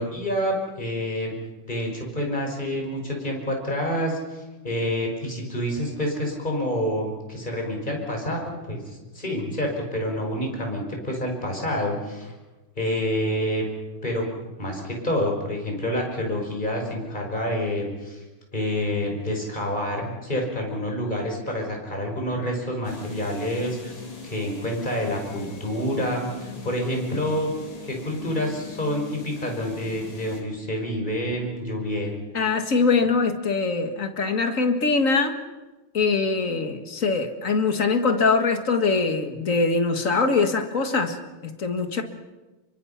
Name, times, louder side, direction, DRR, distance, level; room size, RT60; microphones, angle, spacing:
voice 1, 0.0-1.3 1.7-8.8 9.1-12.3 12.8-13.6 14.0-14.2 14.6-18.2 18.5-27.5 27.8-32.1, equal, 20° left, 0 dB, 5.7 m, -28 dB
sound 1, 22.8-30.4, left 3 dB, 65° left, 4.4 m, -41 dB
voice 2, 32.3-35.4 35.9-41.2 41.4-42.0, left 4 dB, 40° left, 7 dB, 1.9 m, -23 dB
27.5 x 24.0 x 5.8 m, 1.1 s
omnidirectional pair, 2.4 m